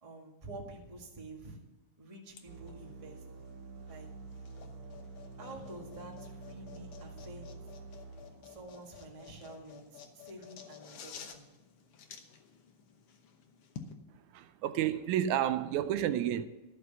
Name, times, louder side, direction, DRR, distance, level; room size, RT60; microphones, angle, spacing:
voice 1, 0.0-1.6 2.0-3.2 3.9-4.1 5.4-7.5 8.4-11.5, right 2 dB, 15° right, 1.3 m, -49 dB
sound 1, 2.3-13.9, left 7 dB, 60° left, 1.7 m, -52 dB
sound 2, 2.5-10.0, right 3 dB, 55° right, 1.9 m, -49 dB
voice 2, 14.3-16.5, right 11 dB, 80° right, 2.0 m, -30 dB
13.5 x 6.6 x 6.9 m
omnidirectional pair, 3.5 m